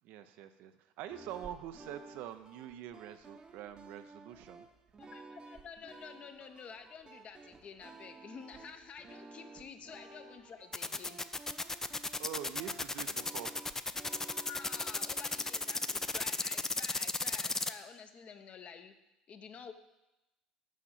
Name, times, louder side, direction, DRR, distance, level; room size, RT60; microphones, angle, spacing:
voice 1, 0.0-4.7 12.2-13.6, right 11 dB, 60° right, 10 dB, 0.5 m, -45 dB
sound 1, 1.1-16.6, right 3 dB, 25° right, 0.8 m, -54 dB
voice 2, 5.0-11.2 14.5-19.0 19.3-19.7, left 6 dB, 40° left, 8 dB, 0.7 m, -50 dB
sound 2, 10.7-17.7, left 3 dB, 15° left, 0.4 m, -34 dB
6.3 x 5.7 x 5.5 m, 0.97 s
figure-of-eight pair, 65°, 3 cm